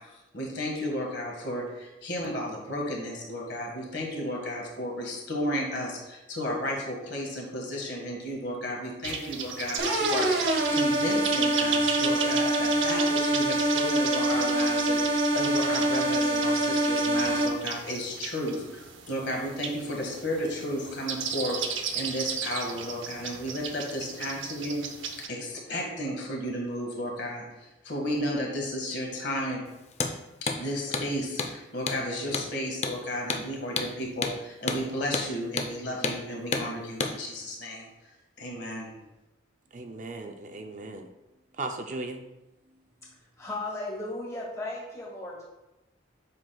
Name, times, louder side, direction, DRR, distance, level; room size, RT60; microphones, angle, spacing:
voice 1, 0.0-29.7 30.6-37.9 38.4-39.0, equal, 60° left, 0 dB, 1.6 m, -33 dB
sound 1, 9.0-25.3, right 6 dB, 75° right, 0.7 m, -35 dB
sound 2, 9.8-17.5, right 1 dB, 55° right, 1.0 m, -25 dB
Hammer, 29.9-30.1 30.5-30.6 30.9-31.1 31.4-31.5 31.9-32.0 32.3-32.5 32.8-33.0 33.3-33.4 33.8-33.9 34.2-34.4 34.7-34.8 35.1-35.3 35.6-35.7 36.0-36.2 36.5-36.7 37.0-37.1, left 4 dB, 35° left, 0.5 m, -29 dB
voice 2, 39.7-41.1 41.6-42.2, right 2 dB, 40° right, 5 dB, 0.4 m, -37 dB
voice 3, 43.4-45.4, left 2 dB, 15° left, -4 dB, 1.6 m, -35 dB
7.6 x 5.8 x 2.3 m, 1.0 s
head